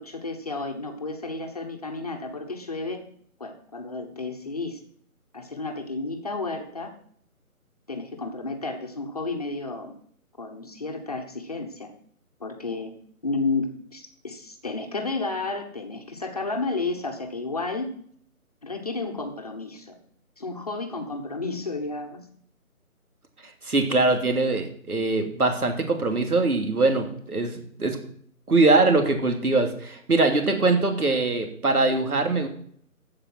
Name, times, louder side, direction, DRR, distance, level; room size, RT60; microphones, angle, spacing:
voice 1, 0.0-3.1 3.4-4.8 5.3-7.0 7.9-10.0 10.4-11.9 12.4-12.9 13.2-17.9 18.6-20.0 20.4-22.3, left 3 dB, 25° left, 4 dB, 1.1 m, -32 dB
voice 2, 23.6-28.0 28.5-32.5, right 3 dB, 80° right, 5 dB, 3.0 m, -22 dB
14.5 x 5.2 x 7.6 m, 0.63 s
figure-of-eight pair, 165°, 44 cm